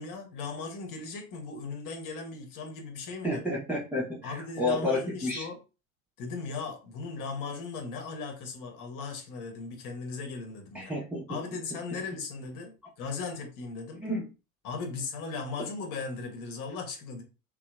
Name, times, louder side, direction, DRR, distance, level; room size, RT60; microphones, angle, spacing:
voice 1, 0.0-3.4 4.2-5.6 6.2-10.9 11.3-14.0 14.6-17.2, left 4 dB, 45° left, 3 dB, 1.0 m, -37 dB
voice 2, 3.2-5.5 10.7-11.3 14.0-14.3, left 1 dB, 5° right, -5 dB, 0.6 m, -31 dB
2.8 x 2.0 x 2.3 m, 0.31 s
figure-of-eight pair, 75°, 44 cm